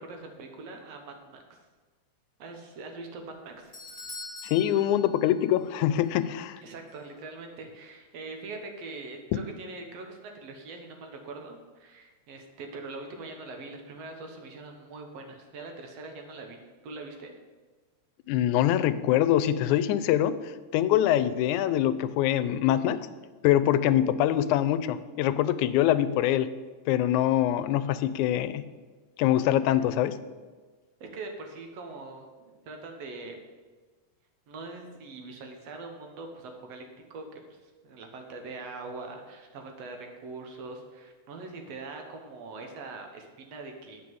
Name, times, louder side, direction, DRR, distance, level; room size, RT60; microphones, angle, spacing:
voice 1, 0.0-1.6 2.4-3.8 6.6-17.4 31.0-33.4 34.5-36.9 37.1-44.0, right 3 dB, 65° right, 3 dB, 2.1 m, -42 dB
Doorbell, 3.2-5.8 6.0-6.1 6.9-7.0, left 2 dB, 15° left, 2.8 m, -44 dB
voice 2, 4.4-6.6 18.3-23.0 23.4-26.5 26.9-28.6 29.2-30.2, left 12 dB, 90° left, 14 dB, 2.0 m, -24 dB
8.6 x 5.6 x 7.7 m, 1.4 s
omnidirectional pair, 3.3 m